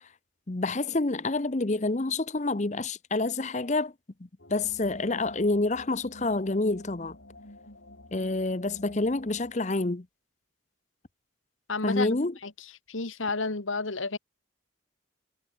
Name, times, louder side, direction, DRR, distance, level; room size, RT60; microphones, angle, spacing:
voice 1, 0.5-3.9 4.5-7.2 8.1-10.1 11.8-12.3, left 2 dB, 35° left, 0.8 m, -28 dB
sound 1, 4.4-9.6, left 1 dB, 70° left, 3.8 m, -50 dB
voice 2, 11.7-12.5 12.9-14.2, left 3 dB, 85° left, 1.9 m, -31 dB
head